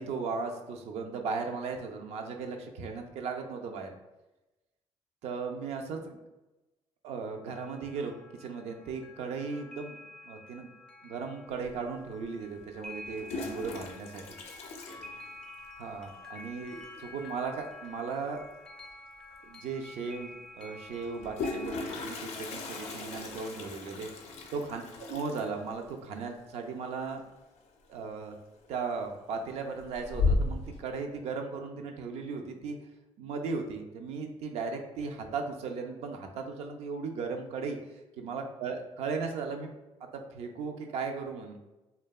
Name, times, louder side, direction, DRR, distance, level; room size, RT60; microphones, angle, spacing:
voice 1, 0.0-3.9 5.2-6.2 7.0-10.0 10.2-10.7 11.0-14.2 15.8-18.4 19.5-24.8 25.1-27.2 27.9-28.3 28.7-32.8 33.2-37.8 38.2-39.7 40.1-41.6, right 4 dB, 70° right, 4 dB, 0.4 m, -37 dB
sound 1, 7.5-25.7, left 2 dB, 5° left, 0.3 m, -50 dB
Toilet flush, 11.6-11.7 12.9-16.0 16.4-16.5 16.8-17.2 18.9-19.0 19.3-19.4 21.0-27.7 28.0-28.4 28.8-29.4 29.8-30.8, left 3 dB, 75° left, 0.4 m, -35 dB
2.7 x 2.2 x 2.2 m, 1.0 s
cardioid pair, 105°, 11 cm